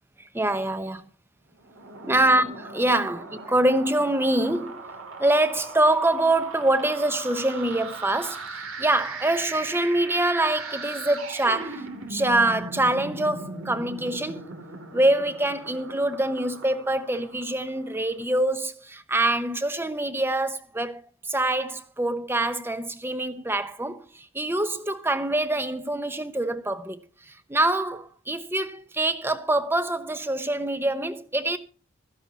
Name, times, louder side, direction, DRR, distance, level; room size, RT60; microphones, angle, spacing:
voice 1, 0.3-1.0 2.0-4.8 5.2-14.5 14.9-21.0 21.3-27.0 27.5-31.6, right 1 dB, 10° right, 0.9 m, -25 dB
sound 1, 1.6-18.0, right 3 dB, 85° right, 2.9 m, -39 dB
16.0 x 13.5 x 2.9 m
head